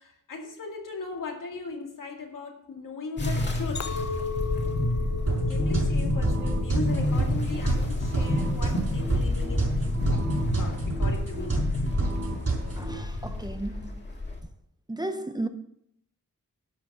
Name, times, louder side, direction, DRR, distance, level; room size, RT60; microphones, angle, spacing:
voice 1, 0.0-4.2 5.4-11.6, left 4 dB, 80° left, 2.3 m, -38 dB
sound 1, 3.2-14.4, left 1 dB, 35° left, 1.9 m, -28 dB
Chink clink, 3.8-8.1 8.6-9.0, left 5 dB, 60° left, 0.7 m, -37 dB
sound 2, 5.3-12.9, right 3 dB, 50° right, 5.4 m, -30 dB
voice 2, 12.7-14.1 14.9-15.5, right 1 dB, 15° right, 0.7 m, -34 dB
12.0 x 5.9 x 6.7 m
wide cardioid pair, 115°, 32 cm